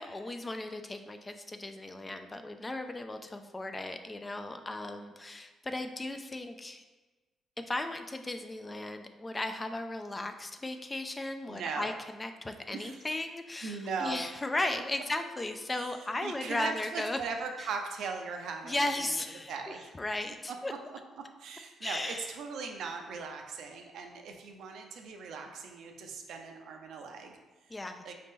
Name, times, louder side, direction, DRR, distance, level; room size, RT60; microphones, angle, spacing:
voice 1, 0.0-6.8 7.7-11.9 12.2-17.2 18.6-19.5 20.0-20.7 21.8-22.3 27.7-28.0, left 2 dB, 20° left, 7 dB, 0.3 m, -36 dB
voice 2, 11.5-11.9 12.7-13.0 13.6-14.2 15.7-15.9 16.2-19.1 19.5-19.9 20.5-20.6 21.4-27.7 28.0-28.1, right 5 dB, 75° right, 4 dB, 0.5 m, -39 dB
4.0 x 2.8 x 3.6 m, 1.2 s
cardioid pair, 90°, 0 cm